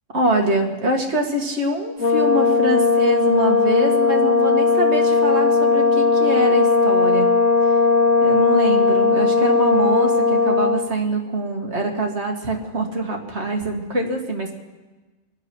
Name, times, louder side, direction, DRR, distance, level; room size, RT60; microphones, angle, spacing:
voice 1, 0.1-7.3 8.2-14.5, right 1 dB, 65° right, 2 dB, 2.2 m, -24 dB
Brass instrument, 2.0-10.9, left 4 dB, 90° left, 1.3 m, -17 dB
24.0 x 8.8 x 6.2 m, 1.2 s
omnidirectional pair, 1.3 m